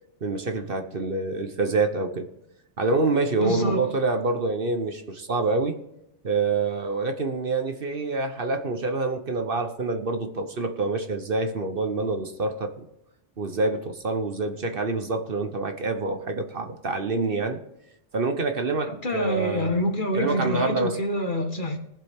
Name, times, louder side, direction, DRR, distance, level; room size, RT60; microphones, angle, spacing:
voice 1, 0.2-2.3 2.8-5.8 6.2-12.8 13.4-17.6 18.1-19.7 20.1-21.0, right 3 dB, 50° right, 6 dB, 1.2 m, -26 dB
voice 2, 3.4-3.8 18.9-21.8, equal, 45° left, 3 dB, 1.8 m, -26 dB
20.0 x 7.5 x 3.7 m, 0.84 s
omnidirectional pair, 1.2 m